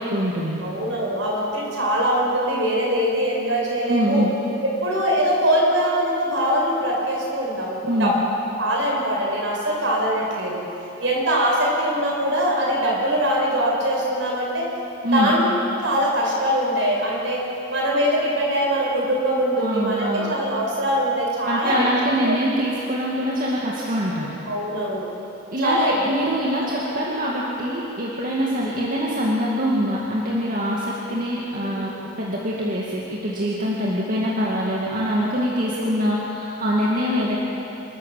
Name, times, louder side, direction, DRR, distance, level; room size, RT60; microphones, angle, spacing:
voice 1, 0.0-0.6 3.9-4.3 7.8-8.1 15.0-15.3 19.6-20.3 21.5-24.3 25.5-37.4, equal, 45° right, -5 dB, 2.2 m, -24 dB
voice 2, 0.6-4.2 4.8-8.1 8.6-10.6 11.0-14.6 15.1-15.4 15.8-17.4 17.7-21.8 22.3-22.4 24.5-25.1 25.6-25.9 26.9-27.0 28.5-28.6 31.6-31.9 35.2-35.4 37.1-37.3, equal, 65° right, -3 dB, 5.9 m, -22 dB
28.0 x 13.0 x 7.6 m, 2.9 s
head